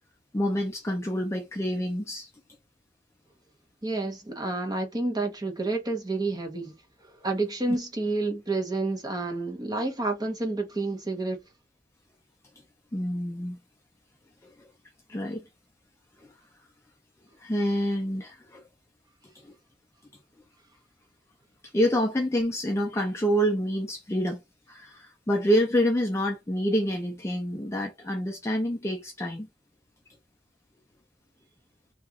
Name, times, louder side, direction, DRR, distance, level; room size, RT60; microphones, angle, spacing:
voice 1, 0.3-2.3 12.9-13.6 15.1-15.4 17.4-18.6 19.4-19.5 21.7-24.4 24.7-29.5, equal, 15° left, 0.4 m, -27 dB
voice 2, 3.8-6.7 7.1-11.4, right 2 dB, 20° right, 0.8 m, -29 dB
2.9 x 2.4 x 3.6 m
head